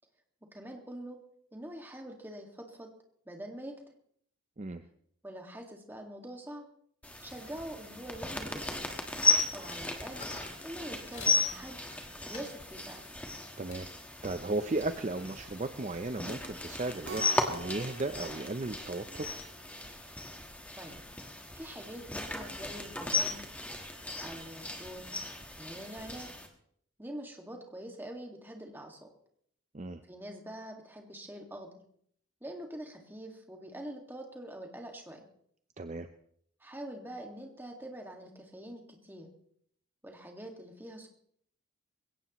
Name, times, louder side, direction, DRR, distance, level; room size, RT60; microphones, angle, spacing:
voice 1, 0.5-1.2 1.5-2.9 3.3-3.8 5.2-6.7 7.2-8.9 9.5-10.2 10.6-11.8 12.2-13.0 20.8-21.0 21.5-23.4 24.2-25.1 25.6-26.3 27.0-29.1 30.1-31.7 32.4-35.2 36.6-39.3 40.0-41.1, right 1 dB, 10° right, 2 dB, 1.9 m, -44 dB
sound 1, 7.0-26.5, left 3 dB, 5° left, 1.4 m, -35 dB
sound 2, 9.6-11.4 11.9-13.8 14.2-16.9, left 3 dB, 35° left, 4.1 m, -53 dB
voice 2, 14.2-19.3 29.7-30.0 35.8-36.1, right 2 dB, 35° right, 9 dB, 0.5 m, -35 dB
Keyboard (musical), 17.1-19.7, right 3 dB, 55° right, 0.9 m, -47 dB
21.5 x 17.0 x 3.1 m, 0.66 s
head